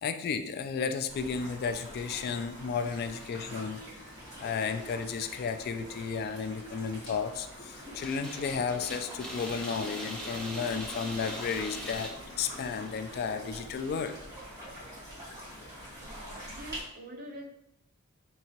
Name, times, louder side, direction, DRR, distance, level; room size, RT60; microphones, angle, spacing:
voice 1, 0.0-4.1 4.4-12.1 12.4-14.2, left 5 dB, 50° left, 8 dB, 0.3 m, -33 dB
sound 1, 1.1-16.8, equal, 15° right, 1.5 m, -45 dB
sound 2, 8.0-13.1, equal, 5° left, 0.6 m, -41 dB
voice 2, 15.9-17.4, right 1 dB, 45° right, 1 dB, 0.8 m, -46 dB
5.3 x 2.8 x 2.9 m, 0.81 s
head